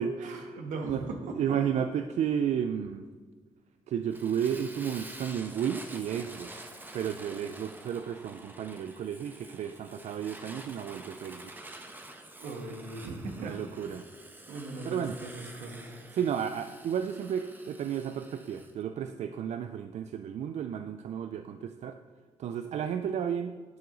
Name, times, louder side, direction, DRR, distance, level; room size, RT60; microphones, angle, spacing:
voice 1, 0.2-1.6 12.4-13.8 14.5-15.8, right 3 dB, 85° right, 3 dB, 1.5 m, -39 dB
voice 2, 1.4-3.0 3.9-6.6 6.9-11.6 13.4-14.0 14.8-15.2 16.1-22.0 22.4-23.5, right 8 dB, 65° right, 8 dB, 0.4 m, -32 dB
Fire, 4.1-18.7, right 1 dB, 15° right, 1.1 m, -48 dB
12.0 x 7.7 x 3.9 m, 1.5 s
cardioid pair, 80°, 12 cm